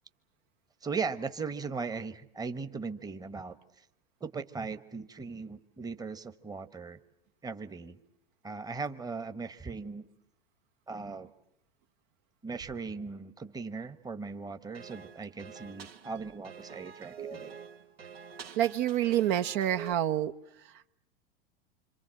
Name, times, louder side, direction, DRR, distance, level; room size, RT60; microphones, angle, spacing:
voice 1, 0.8-3.6 4.2-7.0 7.4-8.0 8.4-10.0 10.9-11.3 12.4-17.6, right 4 dB, 10° right, 1.1 m, -38 dB
sound 1, 14.7-19.9, right 6 dB, 85° right, 1.7 m, -46 dB
voice 2, 18.6-20.3, right 12 dB, 55° right, 1.0 m, -27 dB
26.5 x 26.5 x 7.6 m
hypercardioid pair, 100°, 30 cm